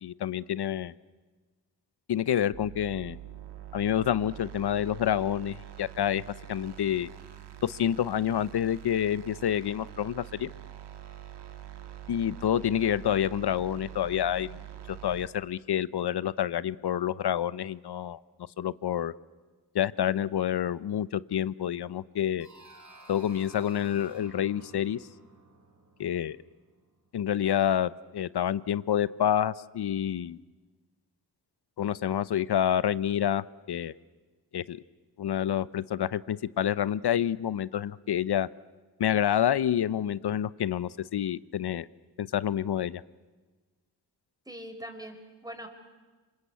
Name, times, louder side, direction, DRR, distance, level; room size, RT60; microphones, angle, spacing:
voice 1, 0.0-0.9 2.1-3.2 3.7-6.2 6.5-7.1 7.6-10.5 12.1-14.6 14.9-18.2 18.6-19.1 19.7-22.5 23.1-25.1 26.0-26.4 27.1-30.4 31.8-33.9 34.5-34.8 35.2-38.5 39.0-41.9 42.2-43.0, left 10 dB, 70° left, 18 dB, 0.8 m, -28 dB
sound 1, 2.5-15.3, right 12 dB, 75° right, 1.8 m, -45 dB
sound 2, 22.4-27.1, right 2 dB, 45° right, 4.7 m, -53 dB
voice 2, 44.5-45.7, equal, 10° right, 5 dB, 4.8 m, -42 dB
26.5 x 26.0 x 8.3 m, 1.3 s
cardioid pair, 65°, 41 cm